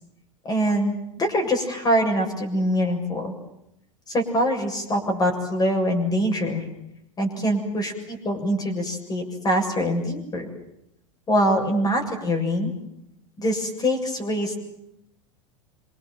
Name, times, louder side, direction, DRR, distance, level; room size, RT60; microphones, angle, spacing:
voice 1, 0.4-3.3 4.1-6.6 7.2-10.5 11.3-12.7 13.4-14.6, equal, 25° left, 3 dB, 7.3 m, -24 dB
27.0 x 25.5 x 7.6 m, 0.80 s
figure-of-eight pair, 90°, 16 cm